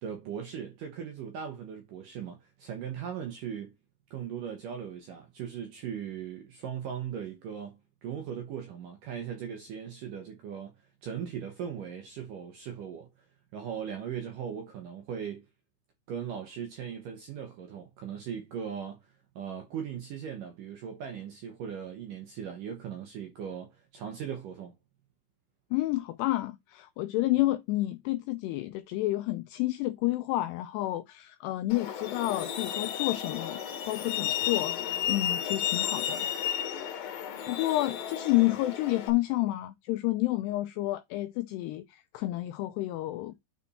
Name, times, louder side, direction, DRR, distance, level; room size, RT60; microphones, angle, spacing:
voice 1, 0.0-3.7 4.1-10.7 11.0-13.3 13.5-15.5 16.1-19.0 19.4-24.7, right 8 dB, 70° right, 2.0 m, -38 dB
voice 2, 25.7-33.6 33.9-37.2 37.5-43.3, left 17 dB, 85° left, 2.4 m, -30 dB
Truck, 31.7-39.1, left 10 dB, 65° left, 2.7 m, -33 dB
9.2 x 4.4 x 4.1 m
omnidirectional pair, 5.3 m